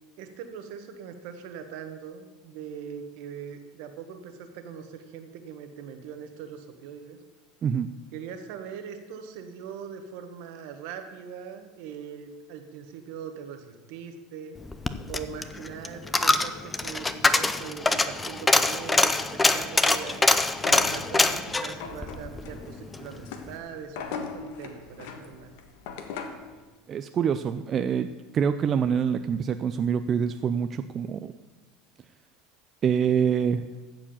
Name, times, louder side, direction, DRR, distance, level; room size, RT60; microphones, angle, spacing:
voice 1, 0.2-7.2 8.1-14.6 15.1-20.3 20.7-25.5, right 7 dB, 65° right, 7 dB, 1.5 m, -41 dB
Coin (dropping), 14.6-23.1 23.4-23.5, left 2 dB, 10° left, 0.6 m, -24 dB
sound 1, 20.6-26.5, left 5 dB, 75° left, 1.4 m, -40 dB
voice 2, 26.9-31.3 32.8-33.6, right 7 dB, 35° right, 9 dB, 0.4 m, -26 dB
14.5 x 4.9 x 7.3 m, 1.3 s
supercardioid pair, 125°, 0 cm